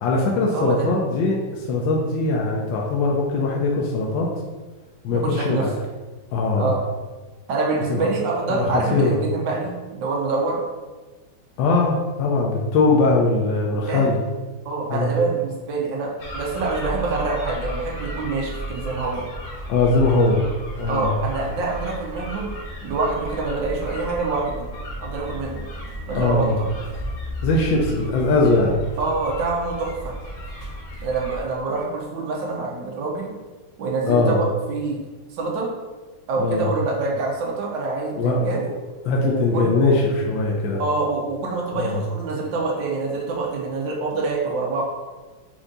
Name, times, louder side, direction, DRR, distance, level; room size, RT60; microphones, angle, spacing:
voice 1, 0.0-4.3 5.0-5.7 6.3-6.7 7.9-8.1 8.5-9.2 11.6-14.2 14.9-15.1 19.7-20.4 20.8-21.1 26.1-26.6 27.4-28.8 34.1-34.4 36.4-36.7 38.2-38.4 39.0-40.8 41.7-42.0, left 3 dB, 80° left, -2 dB, 1.3 m, -21 dB
voice 2, 0.5-0.9 5.1-5.7 6.6-6.8 7.5-10.6 13.9-14.1 14.6-19.2 20.9-22.5 22.8-24.7 25.0-25.6 26.1-26.7 29.0-30.2 31.0-33.3 33.8-35.0 35.3-35.7 36.3-38.6 39.2-39.7 40.8-44.8, right 3 dB, 75° right, -2 dB, 1.5 m, -26 dB
sound 1, 16.2-31.4, equal, 55° left, 0.9 m, -34 dB
4.5 x 2.6 x 3.7 m, 1.3 s
omnidirectional pair, 2.1 m